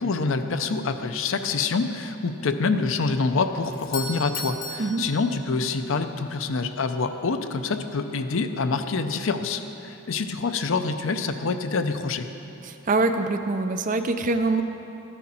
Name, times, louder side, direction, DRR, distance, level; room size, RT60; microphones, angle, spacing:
voice 1, 0.0-12.3, left 4 dB, 65° left, 8 dB, 0.6 m, -26 dB
Doorbell, 3.7-5.9, left 2 dB, 40° left, 0.8 m, -36 dB
voice 2, 12.6-14.6, right 3 dB, 40° right, 8 dB, 0.5 m, -24 dB
13.0 x 10.0 x 4.3 m, 2.9 s
head